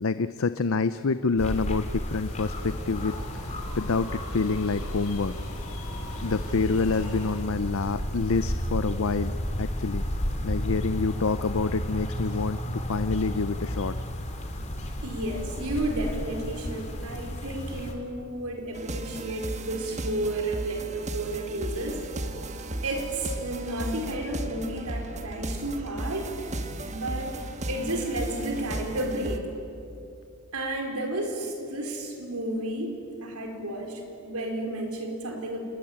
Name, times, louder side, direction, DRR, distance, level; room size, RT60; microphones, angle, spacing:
voice 1, 0.0-3.1 3.7-5.3 6.2-9.3 9.6-10.0 10.4-13.9, left 4 dB, 65° left, 12 dB, 0.6 m, -27 dB
sound 1, 1.4-17.9, equal, 30° left, 3.0 m, -33 dB
sound 2, 2.1-7.4, left 1 dB, 80° left, 5.4 m, -38 dB
voice 2, 15.0-22.0 22.8-26.3 26.9-29.5 30.5-35.6, right 1 dB, 85° right, 3 dB, 4.6 m, -32 dB
sound 3, 18.7-29.4, right 1 dB, 30° right, 1.5 m, -35 dB
28.0 x 21.0 x 8.8 m, 2.7 s
head